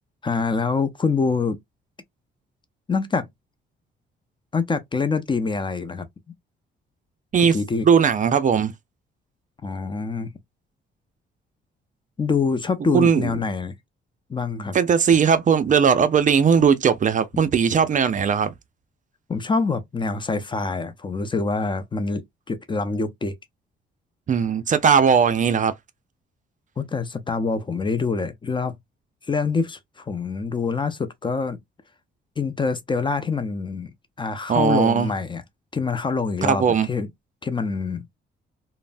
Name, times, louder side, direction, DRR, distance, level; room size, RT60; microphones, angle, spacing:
voice 1, 0.2-1.6 2.9-3.3 4.5-6.1 7.5-7.9 9.6-10.3 12.2-13.7 14.3-14.8 19.3-22.2 22.5-23.4 26.8-28.8 29.3-31.6 32.4-33.9 34.2-35.4 35.7-37.1 37.4-38.0, left 4 dB, 25° left, 0.4 m, -25 dB
voice 2, 7.8-8.7 12.9-13.3 14.7-18.5 24.3-25.7 34.5-35.1 36.4-36.9, right 7 dB, 40° right, 0.4 m, -18 dB
3.1 x 2.0 x 2.4 m
cardioid pair, 90°, 20 cm